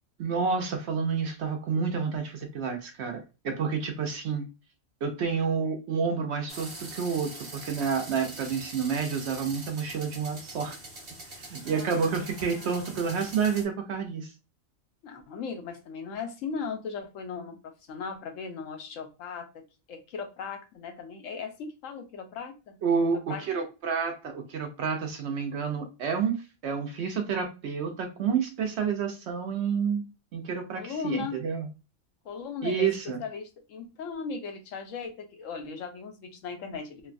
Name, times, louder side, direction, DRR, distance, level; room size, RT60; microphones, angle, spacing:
voice 1, 0.2-4.5 5.0-10.8 11.4-14.3 22.8-31.7 32.6-33.2, right 6 dB, 65° right, 0.8 m, -29 dB
sound 1, 6.5-13.6, right 2 dB, 45° right, 1.2 m, -43 dB
voice 2, 11.6-13.1 15.0-19.6 19.9-22.8 23.3-23.5 30.8-31.4 32.2-37.1, left 5 dB, 75° left, 1.0 m, -38 dB
3.1 x 2.2 x 2.5 m
omnidirectional pair, 1.4 m